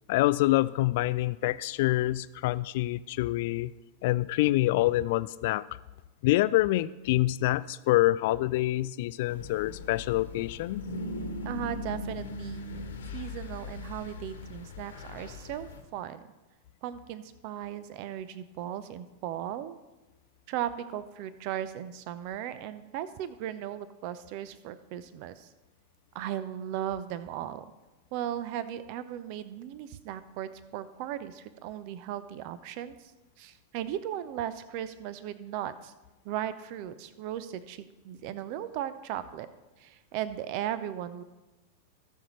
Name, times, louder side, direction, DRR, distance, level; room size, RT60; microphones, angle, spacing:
voice 1, 0.1-3.7 4.0-5.6 6.2-10.9, left 17 dB, 50° left, 17 dB, 0.3 m, -26 dB
sound 1, 9.3-15.8, left 2 dB, 65° left, 1.3 m, -39 dB
voice 2, 11.4-12.6 13.1-16.2 16.8-19.8 20.5-25.5 26.1-27.6 28.1-33.1 33.4-35.9 36.2-39.5 39.8-41.2, right 11 dB, 45° right, 14 dB, 0.7 m, -37 dB
17.5 x 6.4 x 3.1 m, 1.1 s
figure-of-eight pair, 90°, 0 cm